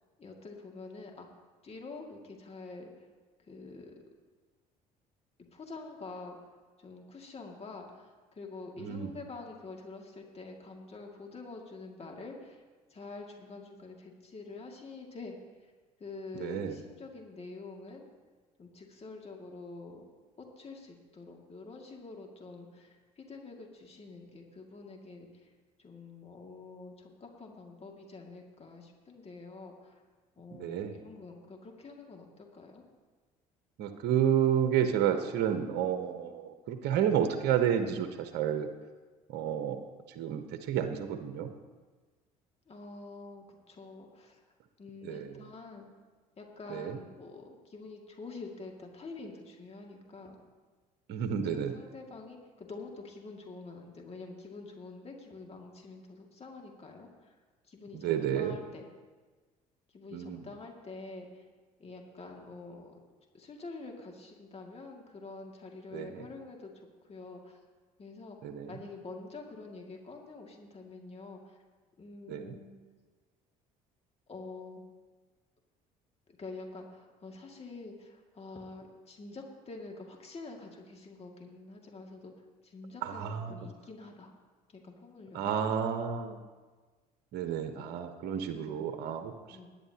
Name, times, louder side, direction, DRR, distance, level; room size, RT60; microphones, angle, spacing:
voice 1, 0.2-1.3 1.6-3.1 3.4-3.9 5.5-6.4 6.8-12.6 12.9-15.4 16.0-18.1 18.6-20.0 20.6-25.5 25.8-30.0 30.4-32.8 42.7-44.4 44.8-45.9 46.4-50.4 51.4-57.4 57.7-58.9 59.9-61.5 61.8-63.0 63.3-67.6 68.0-68.4 68.7-71.6 72.0-72.8 74.3-74.8 76.4-82.3 82.6-84.3 84.7-85.5 87.7-87.9 88.5-88.8 89.5-89.7, left 3 dB, 35° left, 1 dB, 2.3 m, -47 dB
voice 2, 8.8-9.1 16.3-16.8 30.5-31.0 33.8-38.7 39.3-39.8 40.1-41.5 45.0-45.3 46.7-47.0 51.1-51.7 58.0-58.5 60.1-60.4 65.9-66.3 68.4-68.7 72.3-72.6 83.0-83.6 85.3-86.4 87.3-89.3, right 9 dB, 60° right, 7 dB, 1.1 m, -30 dB
21.5 x 10.0 x 2.9 m, 1.3 s
hypercardioid pair, 60°, 19 cm